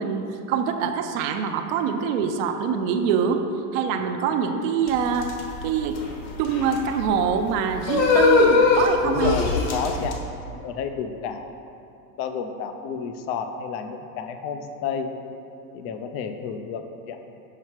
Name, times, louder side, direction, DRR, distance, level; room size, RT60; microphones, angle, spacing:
voice 1, 0.0-3.5 3.7-5.3 5.6-6.0 6.4-9.4, right 6 dB, 55° right, 5 dB, 0.6 m, -24 dB
sound 1, 4.9-10.1, left 4 dB, 60° left, 1.3 m, -22 dB
voice 2, 9.0-11.5 12.2-15.1 15.7-17.2, left 6 dB, 30° left, 7 dB, 0.3 m, -31 dB
5.9 x 5.5 x 4.5 m, 2.7 s
hypercardioid pair, 115°, 47 cm